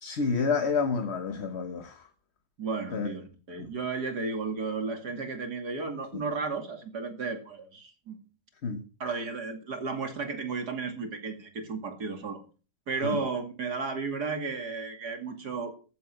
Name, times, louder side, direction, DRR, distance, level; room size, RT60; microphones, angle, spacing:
voice 1, 0.0-2.0 2.9-3.1 3.6-3.7 6.1-6.2 8.6-8.8 13.0-13.2, left 5 dB, 45° left, 1.2 m, -29 dB
voice 2, 2.6-8.2 9.0-12.4 12.9-15.7, right 4 dB, 65° right, 3.0 m, -33 dB
14.5 x 7.8 x 6.5 m
omnidirectional pair, 1.9 m